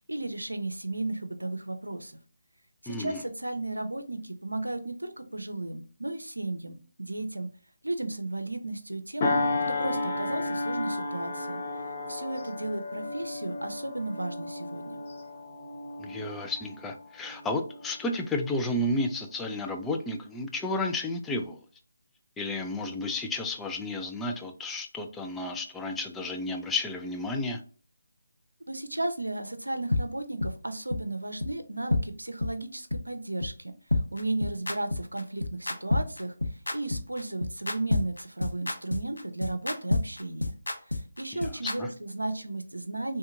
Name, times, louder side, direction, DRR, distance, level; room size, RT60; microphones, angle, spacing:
voice 1, 0.1-2.1 2.8-7.5 7.8-9.3 9.8-11.6 12.1-15.0 28.7-33.7 34.1-36.3 36.7-40.5 41.2-43.2, right 2 dB, 90° right, 7 dB, 0.6 m, -34 dB
voice 2, 2.9-3.2 16.0-21.6 22.4-27.6 41.3-41.9, left 2 dB, 5° left, 4 dB, 0.3 m, -32 dB
sound 1, 9.2-18.1 18.5-18.7, left 2 dB, 35° left, 0.9 m, -33 dB
sound 2, 29.9-30.0 30.4-30.5 30.9-31.0 31.4-31.5 31.9-32.0 32.4-32.5 32.9-33.0 33.4-33.5 33.9-41.8, left 2 dB, 75° left, 0.6 m, -28 dB
3.3 x 2.8 x 2.4 m, 0.41 s
figure-of-eight pair, 155°, 0 cm